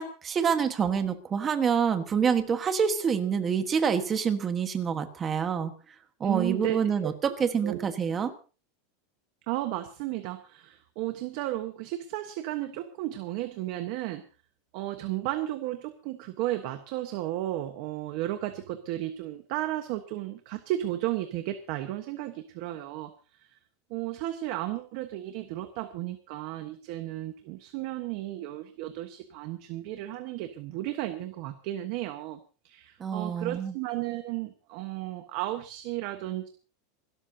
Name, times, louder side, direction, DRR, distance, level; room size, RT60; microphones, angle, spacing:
voice 1, 0.0-5.7 6.2-8.3 33.0-33.7, right 6 dB, 20° right, 8 dB, 1.5 m, -27 dB
voice 2, 6.2-7.3 7.6-7.9 9.5-14.2 14.7-23.1 23.4-23.5 23.9-32.4 32.6-36.5, right 15 dB, 45° right, 7 dB, 1.3 m, -34 dB
27.5 x 13.0 x 2.8 m, 0.35 s
supercardioid pair, 170°, 0 cm